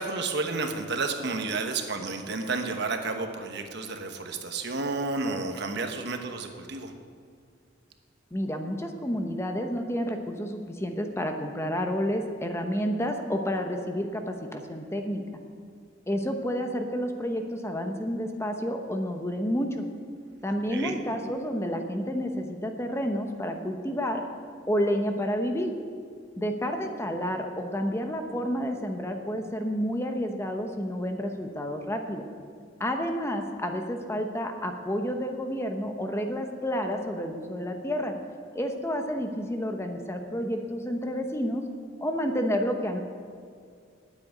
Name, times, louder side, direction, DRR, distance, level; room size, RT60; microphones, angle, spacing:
voice 1, 0.0-6.9 20.7-21.0, right 3 dB, 60° right, 5 dB, 1.1 m, -31 dB
voice 2, 8.3-15.2 16.1-19.9 20.4-24.2 24.7-25.7 26.4-32.3 32.8-38.1 38.5-41.7 42.0-43.0, equal, 15° left, 4 dB, 0.9 m, -30 dB
8.9 x 8.6 x 9.3 m, 2.2 s
head